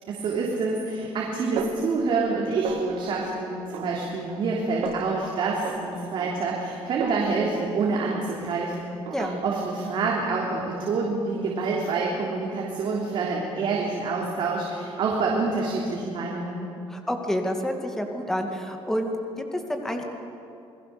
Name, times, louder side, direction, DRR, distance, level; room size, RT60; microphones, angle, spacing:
voice 1, 0.1-16.6, right 3 dB, 55° right, -3 dB, 3.4 m, -27 dB
Snare drum, 1.6-2.4 2.6-3.2 3.7-4.5 4.8-5.2 5.6-7.7 8.1-8.6 9.1-9.7, right 7 dB, 75° right, 1.9 m, -36 dB
voice 2, 16.9-20.0, equal, 5° left, 3 dB, 2.2 m, -29 dB
28.5 x 20.5 x 6.9 m, 2.8 s
cardioid pair, 155°, 10 cm